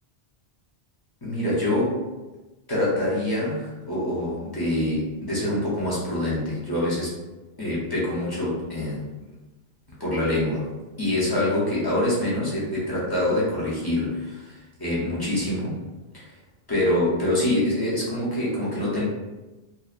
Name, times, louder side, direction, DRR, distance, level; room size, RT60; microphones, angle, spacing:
voice 1, 1.2-2.0 2.7-7.2 7.6-9.0 10.0-10.7 11.0-15.8 16.1-16.2 16.7-19.1, left 1 dB, 30° left, -7 dB, 0.4 m, -25 dB
2.6 x 2.1 x 2.4 m, 1.1 s
omnidirectional pair, 1.2 m